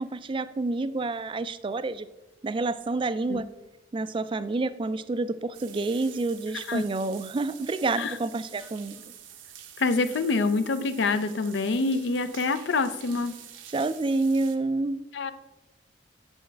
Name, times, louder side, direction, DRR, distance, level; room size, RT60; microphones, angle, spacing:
voice 1, 0.0-2.1 2.4-3.5 3.9-9.0 13.7-15.0, right 3 dB, 25° right, 14 dB, 0.3 m, -28 dB
sound 1, 5.5-14.6, right 10 dB, 80° right, 0.8 m, -47 dB
voice 2, 9.8-13.4 15.1-15.3, left 3 dB, 65° left, 12 dB, 0.5 m, -26 dB
8.9 x 7.5 x 3.3 m, 1.0 s
head